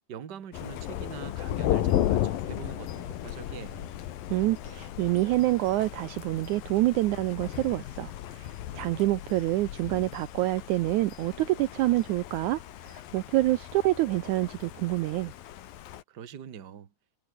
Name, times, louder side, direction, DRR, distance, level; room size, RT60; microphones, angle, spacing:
voice 1, 0.1-3.9 16.1-16.9, right 8 dB, 40° right, 1.6 m, -43 dB
Thunder, 0.5-16.0, left 12 dB, 80° left, 3.3 m, -35 dB
voice 2, 4.3-15.3, right 17 dB, 80° right, 1.8 m, -27 dB
omnidirectional pair, 4.1 m